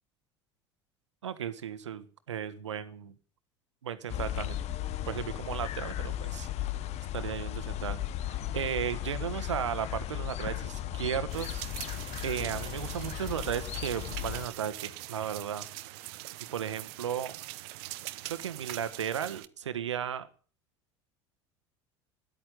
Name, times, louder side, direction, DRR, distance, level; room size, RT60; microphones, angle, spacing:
voice 1, 1.2-3.1 3.8-4.6 5.1-6.5 7.1-8.0 8.3-15.7 16.5-17.4 18.2-20.3, right 9 dB, 80° right, 12 dB, 1.6 m, -35 dB
sound 1, 4.1-14.5, left 12 dB, 45° left, 1.2 m, -36 dB
sound 2, 11.3-19.5, right 18 dB, 60° right, 1.0 m, -43 dB
13.5 x 11.0 x 9.1 m, 0.42 s
figure-of-eight pair, 70°, 15 cm